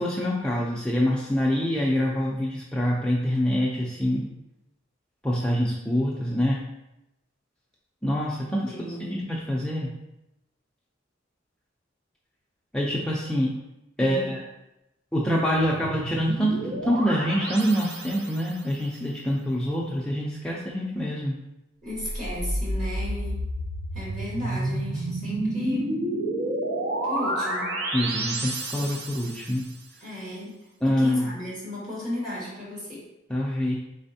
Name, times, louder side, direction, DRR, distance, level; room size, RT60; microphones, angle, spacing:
voice 1, 0.0-4.3 5.2-6.6 8.0-8.7 9.3-9.9 12.7-13.5 14.0-14.4 15.1-21.4 27.9-29.7 30.8-31.3 33.3-33.7, equal, 5° left, -4 dB, 0.4 m, -25 dB
voice 2, 8.6-9.2 14.0-14.3 21.8-23.4 23.9-25.9 27.0-27.8 28.8-28.9 30.0-30.5 30.8-33.0, left 1 dB, 45° right, -7 dB, 1.6 m, -35 dB
sound 1, 15.5-18.6 21.9-29.6, right 1 dB, 60° right, 0.6 m, -30 dB
4.2 x 4.1 x 2.7 m, 0.91 s
head